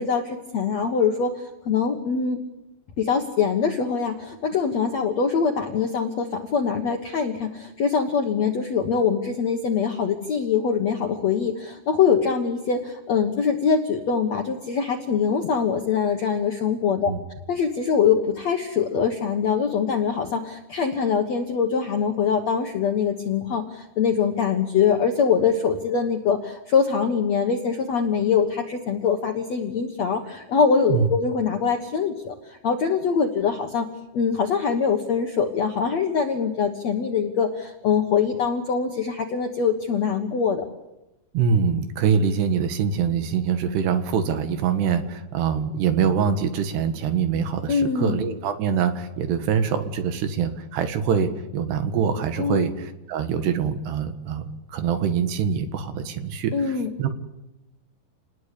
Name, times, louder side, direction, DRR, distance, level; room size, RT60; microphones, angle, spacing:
voice 1, 0.0-2.4 3.0-17.1 17.5-33.9 34.1-40.6 47.7-48.2 52.4-52.7 56.5-56.9, left 6 dB, 65° left, 4 dB, 1.8 m, -23 dB
voice 2, 41.3-57.1, right 7 dB, 70° right, 9 dB, 3.6 m, -24 dB
29.5 x 20.0 x 8.5 m, 0.96 s
omnidirectional pair, 5.2 m